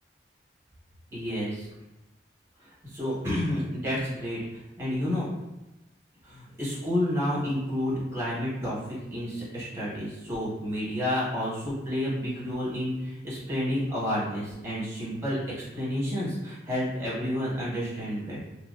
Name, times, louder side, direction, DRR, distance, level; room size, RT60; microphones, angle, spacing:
voice 1, 1.1-1.7 2.6-5.3 6.2-15.4 15.7-18.4, left 1 dB, 15° right, -8 dB, 1.3 m, -30 dB
2.9 x 2.7 x 2.5 m, 0.98 s
head